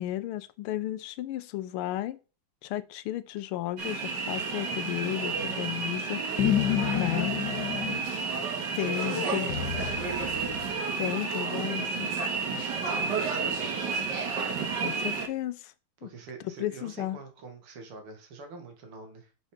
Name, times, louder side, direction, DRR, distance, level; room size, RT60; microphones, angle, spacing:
voice 1, 0.0-2.2 2.6-6.2 6.9-7.4 8.7-9.5 11.0-12.1 14.8-15.7 16.0-16.1 16.4-17.2, left 14 dB, 85° left, 1.5 m, -33 dB
sound 1, 3.8-15.3, right 4 dB, 55° right, 1.8 m, -31 dB
voice 2, 5.3-6.0 8.2-10.0 12.3-14.3 16.0-19.3, right 1 dB, 85° right, 2.4 m, -43 dB
sound 2, 6.4-8.0 9.5-10.8, left 11 dB, 65° left, 1.3 m, -29 dB
6.4 x 4.8 x 4.9 m
omnidirectional pair, 2.4 m